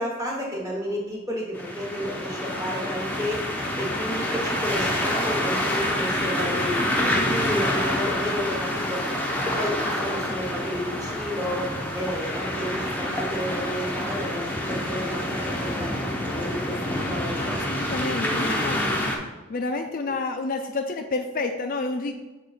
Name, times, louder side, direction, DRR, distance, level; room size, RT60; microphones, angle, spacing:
voice 1, 0.0-9.0 9.5-11.7 11.9-17.6 18.2-18.9 20.1-20.2, equal, 15° right, -3 dB, 1.3 m, -32 dB
sound 1, 1.5-19.2, left 1 dB, 10° left, 0.6 m, -27 dB
voice 2, 3.6-4.0 7.9-8.1 17.4-19.1 19.5-22.1, left 3 dB, 45° left, 6 dB, 0.4 m, -30 dB
6.5 x 3.8 x 4.0 m, 1.1 s
head